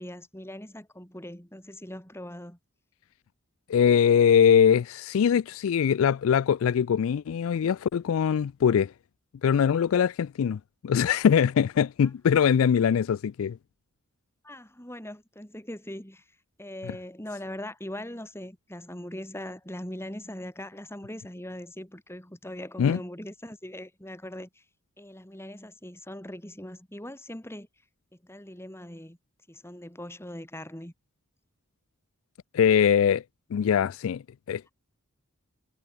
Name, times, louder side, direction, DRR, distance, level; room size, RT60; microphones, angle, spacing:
voice 1, 0.0-2.6 14.4-16.2 16.6-24.5 25.0-27.7 28.2-29.2 29.5-30.9, left 1 dB, 10° left, 4.2 m, -40 dB
voice 2, 3.7-8.9 9.4-13.6 16.9-17.0 22.8-23.0 32.5-33.2 33.5-34.2 34.5-34.7, left 8 dB, 70° left, 0.3 m, -22 dB
head